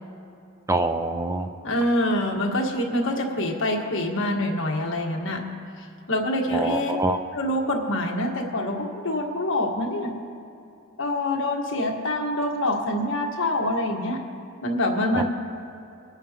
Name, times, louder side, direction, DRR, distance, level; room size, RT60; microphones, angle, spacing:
voice 1, 0.7-1.5 6.5-7.2 15.1-15.2, right 2 dB, 15° right, 7 dB, 0.4 m, -25 dB
voice 2, 1.6-5.5 6.1-6.9 7.3-10.2 11.0-14.2 14.6-15.2, left 1 dB, 60° left, 0 dB, 1.5 m, -25 dB
23.5 x 8.8 x 2.9 m, 2.7 s
head